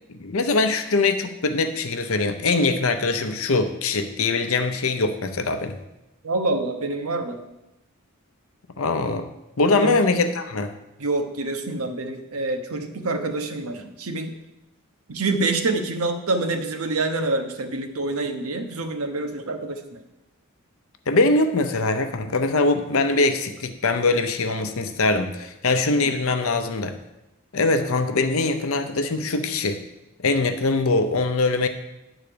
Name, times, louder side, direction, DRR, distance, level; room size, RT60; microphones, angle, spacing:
voice 1, 0.1-5.8 8.8-9.3 9.6-10.7 21.1-27.0 27.5-29.8 30.2-31.7, left 3 dB, 70° left, 8 dB, 0.7 m, -22 dB
voice 2, 6.2-7.4 9.7-10.0 11.0-14.4 15.1-20.0 25.8-26.1, right 2 dB, 80° right, 6 dB, 1.0 m, -26 dB
10.0 x 4.0 x 6.7 m, 0.93 s
head